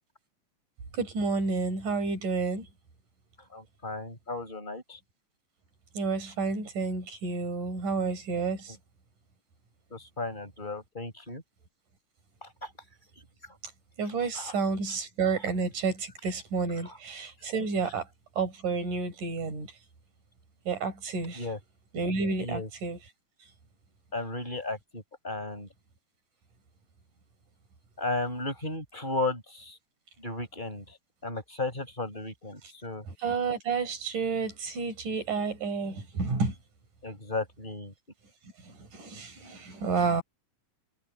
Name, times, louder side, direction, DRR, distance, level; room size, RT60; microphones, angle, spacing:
voice 1, 0.9-2.7 5.9-8.8 14.0-18.1 18.4-19.7 20.7-21.4 21.9-23.0 33.2-36.5 38.6-40.2, right 4 dB, 80° right, 6.7 m, -30 dB
voice 2, 3.5-5.0 9.9-11.4 12.4-12.7 14.3-14.5 16.8-17.0 21.3-21.6 22.4-22.7 24.1-25.7 28.0-29.8 30.2-31.0 31.2-33.0 37.0-37.9, left 2 dB, 15° left, 6.6 m, -35 dB
omnidirectional pair, 3.6 m